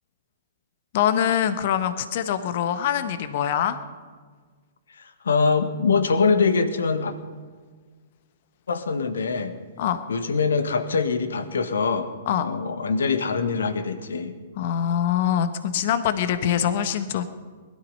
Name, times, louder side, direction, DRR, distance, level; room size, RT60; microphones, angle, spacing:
voice 1, 0.9-3.8 9.8-10.0 12.3-12.5 14.6-17.2, left 9 dB, 50° left, 11 dB, 1.3 m, -24 dB
voice 2, 5.0-7.1 8.7-9.5 10.1-12.1 12.4-14.4, left 4 dB, 75° left, 10 dB, 1.6 m, -23 dB
20.5 x 12.5 x 5.6 m, 1.5 s
figure-of-eight pair, 115°, 0 cm